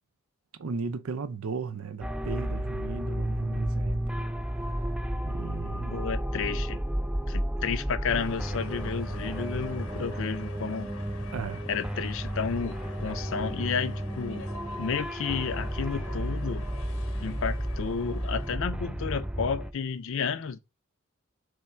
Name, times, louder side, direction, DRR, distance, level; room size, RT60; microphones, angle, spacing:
voice 1, 0.6-4.0 4.6-4.9 5.2-6.1 11.3-11.7, right 4 dB, 90° right, 0.5 m, -36 dB
sound 1, 2.0-19.7, equal, 5° right, 0.3 m, -32 dB
voice 2, 5.9-6.8 7.3-10.9 11.7-14.5 14.8-16.7 17.2-20.6, left 6 dB, 65° left, 0.5 m, -32 dB
sound 2, 8.1-18.6, left 4 dB, 90° left, 0.9 m, -47 dB
3.5 x 3.3 x 4.3 m
head